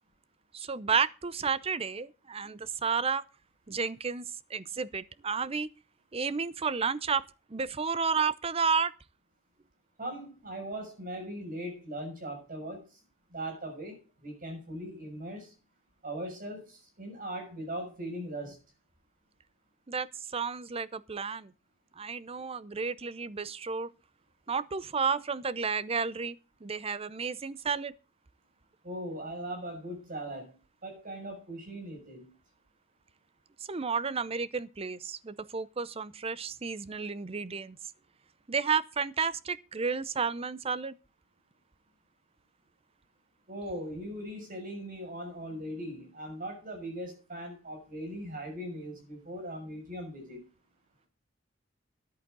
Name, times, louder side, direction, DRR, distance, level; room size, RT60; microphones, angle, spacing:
voice 1, 0.5-3.2 3.7-5.7 6.1-7.2 7.5-8.9 19.9-21.5 22.0-23.9 24.5-26.4 26.6-27.9 33.7-37.8 38.5-40.9, right 5 dB, 30° right, 0.6 m, -31 dB
voice 2, 10.0-13.0 13.3-15.5 16.0-18.6 28.8-32.3 43.5-50.4, right 1 dB, 45° right, 6.4 m, -39 dB
13.5 x 10.5 x 3.8 m
head